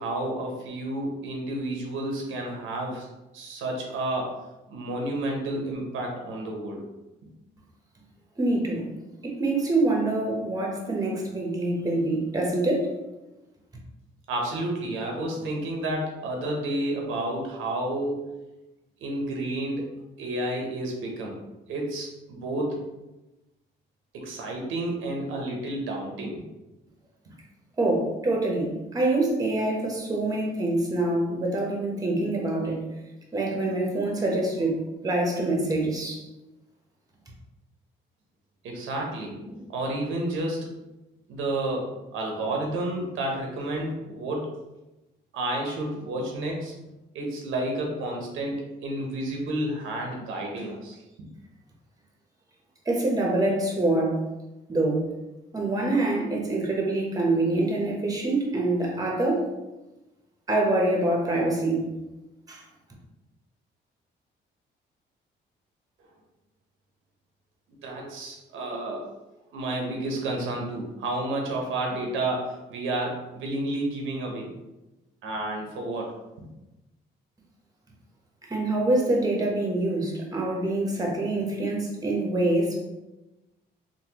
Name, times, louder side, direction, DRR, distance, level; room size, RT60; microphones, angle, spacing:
voice 1, 0.0-3.1 3.3-4.3 4.7-6.8 14.3-18.2 19.0-19.9 20.2-21.3 21.7-22.8 24.1-26.4 38.6-40.7 41.3-41.8 42.1-44.5 45.3-46.7 47.1-51.3 67.7-69.1 69.5-74.5 75.2-76.1 76.4-76.5, right 1 dB, 85° right, 0 dB, 0.7 m, -30 dB
voice 2, 8.4-8.8 9.2-12.9 27.8-32.8 33.3-34.8 35.0-36.2 52.9-54.2 54.7-55.1 55.5-59.5 60.5-61.9 62.5-62.6 78.5-82.9, right 2 dB, 20° right, -1 dB, 0.9 m, -25 dB
3.5 x 2.2 x 2.9 m, 1.0 s
cardioid pair, 90°, 20 cm